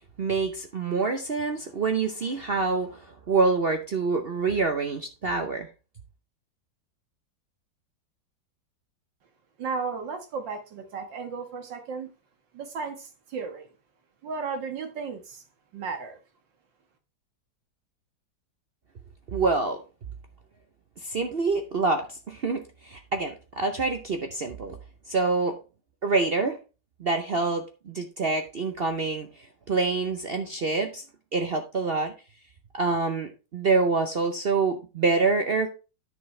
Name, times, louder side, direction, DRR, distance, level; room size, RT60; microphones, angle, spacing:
voice 1, 0.2-5.7 19.3-19.8 21.0-24.8 25.1-25.6 26.0-26.6 27.0-29.3 29.7-31.0 31.3-32.1 32.7-35.7, right 4 dB, 55° right, 0.6 m, -26 dB
voice 2, 9.6-12.1 12.5-13.7 14.2-15.4 15.7-16.2, right 5 dB, 85° right, 2.1 m, -34 dB
10.5 x 6.2 x 3.2 m
omnidirectional pair, 1.9 m